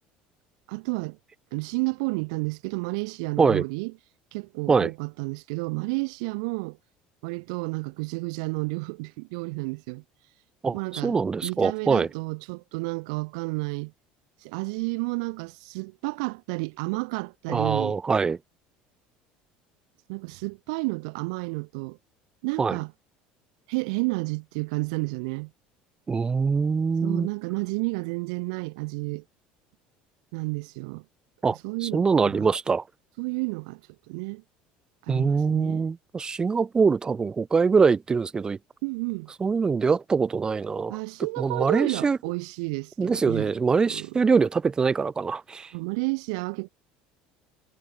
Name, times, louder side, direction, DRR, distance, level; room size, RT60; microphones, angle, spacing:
voice 1, 0.7-1.2 1.5-3.9 4.3-6.8 7.2-10.0 10.7-13.9 14.4-18.0 20.1-22.0 22.4-22.9 23.7-25.5 27.0-29.2 30.3-31.0 31.5-32.5 33.2-33.8 34.1-34.4 35.0-35.8 38.8-39.3 40.9-43.5 43.8-44.2 45.7-46.7, right 30 dB, 85° right, 2.7 m, -31 dB
voice 2, 10.6-12.1 17.5-18.4 22.6-22.8 26.1-27.3 31.4-32.8 35.1-38.6 39.4-41.0 41.4-42.2 43.0-45.7, right 5 dB, 25° right, 1.0 m, -23 dB
supercardioid pair, 110°, 3 cm